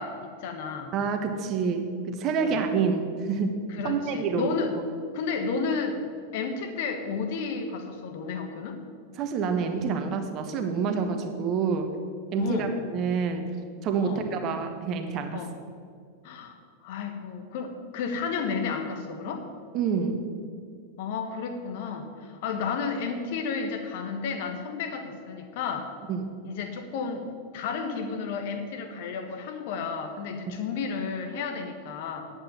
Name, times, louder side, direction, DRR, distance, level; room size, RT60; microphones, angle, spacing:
voice 1, 0.0-0.9 2.4-2.6 3.7-4.7 5.1-6.0 6.3-8.8 12.4-12.7 14.0-14.2 15.3-15.5 16.2-16.5 16.8-19.5 21.0-25.9 26.4-27.3 27.5-32.2, left 5 dB, 50° left, 6 dB, 1.4 m, -32 dB
voice 2, 0.9-4.5 9.2-11.9 12.3-13.5 13.8-15.4 19.7-20.2 26.1-26.3, right 5 dB, 35° right, 6 dB, 1.4 m, -28 dB
10.5 x 8.4 x 7.3 m, 2.2 s
figure-of-eight pair, 90°, 0 cm